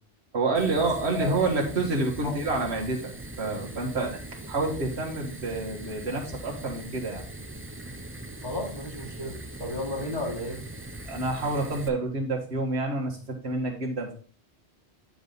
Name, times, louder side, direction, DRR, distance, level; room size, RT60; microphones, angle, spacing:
voice 1, 0.3-3.1 3.4-4.2 4.5-7.2 11.1-14.2, right 3 dB, 70° right, 0 dB, 1.9 m, -28 dB
Fire, 0.5-11.9, right 1 dB, 15° right, 0.7 m, -41 dB
voice 2, 1.1-2.5 8.4-10.6, left 1 dB, 35° left, -4 dB, 3.0 m, -34 dB
9.6 x 5.0 x 4.0 m, 0.41 s
omnidirectional pair, 1.1 m